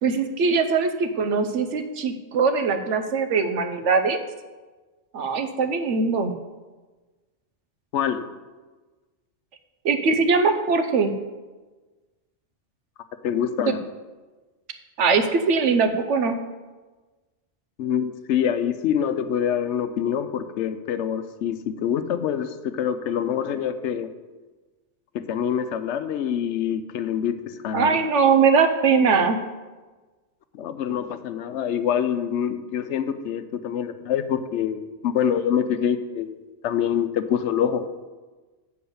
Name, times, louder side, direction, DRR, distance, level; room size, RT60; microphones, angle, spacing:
voice 1, 0.0-4.2 5.1-6.3 9.8-11.1 13.7-13.8 15.0-16.3 27.7-29.4, right 5 dB, 90° right, 8 dB, 1.1 m, -21 dB
voice 2, 7.9-8.2 13.2-13.8 17.8-24.1 25.1-28.0 30.5-37.8, left 8 dB, 80° left, 10 dB, 0.9 m, -25 dB
8.6 x 4.6 x 6.9 m, 1.3 s
omnidirectional pair, 1.2 m